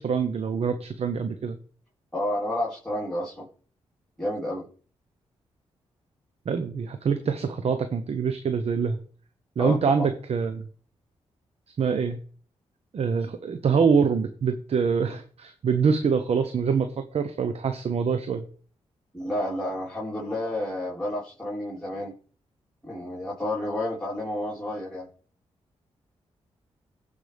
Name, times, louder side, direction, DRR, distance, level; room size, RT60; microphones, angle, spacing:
voice 1, 0.0-1.6 6.5-9.0 9.6-10.7 11.8-12.2 12.9-18.4, right 6 dB, 65° right, 9 dB, 0.9 m, -25 dB
voice 2, 2.1-3.5 4.2-4.7 9.6-10.1 19.1-22.1 22.8-25.1, left 1 dB, 5° left, -6 dB, 3.8 m, -30 dB
16.0 x 5.4 x 3.5 m, 0.43 s
supercardioid pair, 55°, 12 cm